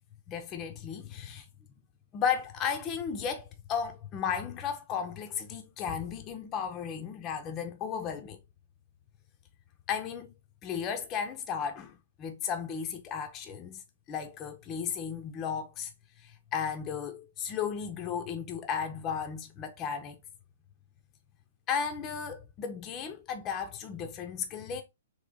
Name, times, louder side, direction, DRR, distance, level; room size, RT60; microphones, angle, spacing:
voice 1, 0.3-1.5 2.1-8.4 9.9-10.3 10.6-13.8 14.1-15.9 16.2-20.2 21.7-24.8, left 7 dB, 25° left, 0.5 m, -34 dB
3.4 x 3.0 x 3.8 m
figure-of-eight pair, 115°, 0 cm